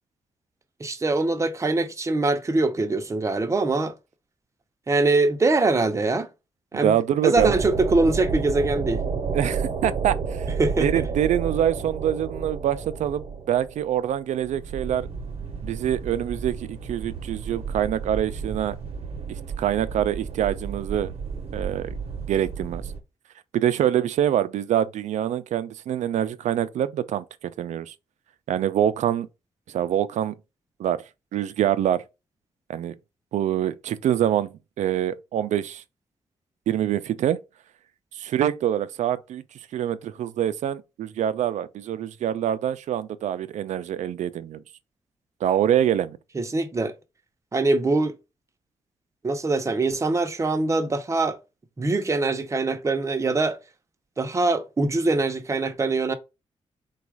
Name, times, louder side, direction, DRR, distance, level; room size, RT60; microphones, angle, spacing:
voice 1, 0.8-3.9 4.9-6.3 6.7-7.0 7.2-9.0 10.6-11.1 46.3-46.9 47.5-48.2 49.2-51.4 51.8-53.6 54.2-56.1, right 3 dB, 25° right, 0.6 m, -23 dB
voice 2, 6.8-7.6 9.3-10.5 10.8-15.1 15.6-18.8 19.3-21.1 21.5-21.9 22.3-22.9 23.5-27.9 28.5-29.3 29.7-30.4 30.8-31.0 31.3-32.0 32.7-33.0 33.3-35.8 36.7-37.4 38.1-39.4 39.7-44.6 45.4-46.2, right 10 dB, 85° right, 0.4 m, -25 dB
sound 1, 7.4-23.0, right 5 dB, 60° right, 0.8 m, -31 dB
4.0 x 2.3 x 4.6 m
cardioid pair, 110°, 12 cm